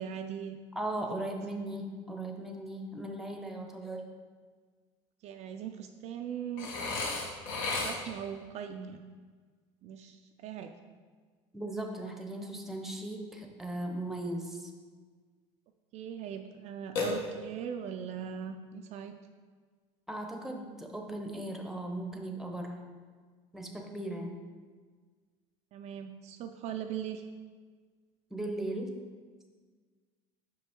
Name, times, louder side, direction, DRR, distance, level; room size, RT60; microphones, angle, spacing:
voice 1, 0.0-0.6 1.3-1.4 5.2-6.7 7.8-9.0 9.8-10.7 15.9-19.2 25.7-27.2, right 8 dB, 50° right, 5 dB, 0.4 m, -40 dB
voice 2, 0.7-4.1 11.5-14.7 20.1-22.8 23.5-24.4 28.3-29.0, right 1 dB, ahead, 2 dB, 0.7 m, -37 dB
Burping eructation, 6.6-8.3 17.0-17.7, left 3 dB, 75° left, 1.3 m, -34 dB
6.0 x 5.3 x 3.5 m, 1.5 s
cardioid pair, 125°, 15 cm